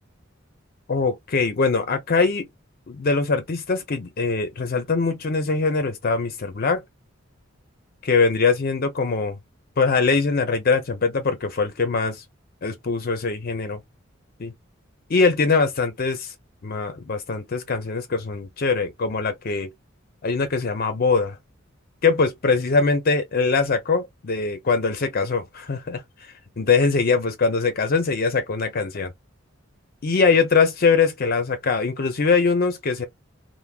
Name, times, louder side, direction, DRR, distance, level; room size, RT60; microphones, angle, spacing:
voice 1, 0.9-2.5 2.9-6.8 8.0-9.4 9.8-12.2 12.6-13.8 14.4-14.5 15.1-16.3 16.6-19.7 20.2-21.4 22.0-29.1 30.0-33.0, left 4 dB, 45° left, 0.5 m, -22 dB
3.3 x 2.1 x 2.3 m
head